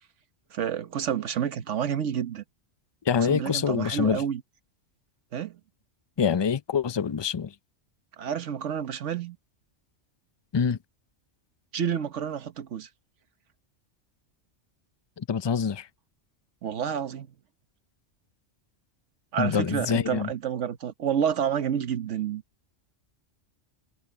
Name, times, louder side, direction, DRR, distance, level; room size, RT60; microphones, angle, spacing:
voice 1, 0.5-2.4 3.2-4.4 5.3-5.6 8.2-9.4 11.7-12.9 16.6-17.3 19.3-22.4, right 8 dB, 75° right, 1.3 m, -29 dB
voice 2, 3.1-4.2 6.2-7.5 10.5-10.8 15.2-15.9 19.4-20.3, left 6 dB, 40° left, 0.4 m, -25 dB
omnidirectional pair, 1.2 m